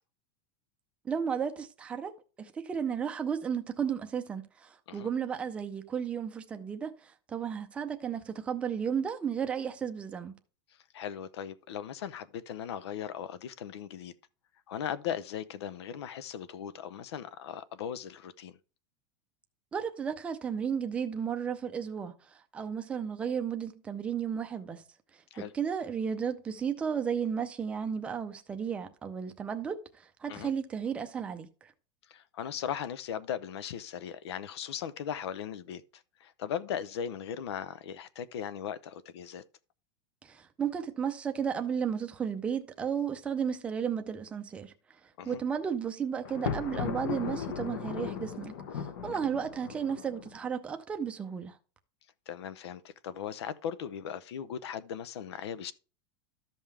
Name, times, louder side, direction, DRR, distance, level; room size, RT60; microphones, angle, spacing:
voice 1, 1.0-10.3 19.7-22.2 22.5-24.8 25.4-29.8 30.2-31.7 40.2-44.7 45.3-51.6, right 7 dB, 10° right, 0.5 m, -33 dB
voice 2, 10.9-14.1 14.7-18.6 25.3-25.5 30.3-30.5 32.1-39.4 45.2-45.4 52.3-55.7, left 9 dB, 85° left, 0.7 m, -38 dB
Thunder, 46.2-50.4, left 7 dB, 60° left, 1.2 m, -37 dB
13.5 x 5.5 x 3.3 m
supercardioid pair, 180°, 13 cm